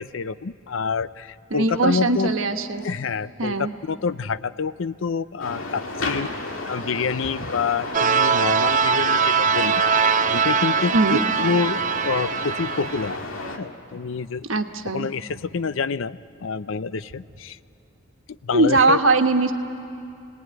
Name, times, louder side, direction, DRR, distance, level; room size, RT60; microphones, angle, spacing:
voice 1, 0.0-2.3 2.8-3.6 3.8-6.3 6.7-9.8 10.3-13.2 13.6-14.4 14.9-17.6 18.3-19.0, left 5 dB, 70° left, 15 dB, 0.5 m, -27 dB
voice 2, 1.5-2.9 3.4-3.7 10.9-11.2 14.5-15.1 18.5-19.5, right 3 dB, 75° right, 6 dB, 1.3 m, -20 dB
sound 1, 5.4-13.6, left 2 dB, 90° left, 2.1 m, -32 dB
sound 2, 7.9-13.2, right 6 dB, 40° right, 0.6 m, -22 dB
28.5 x 19.5 x 9.5 m, 2.6 s
head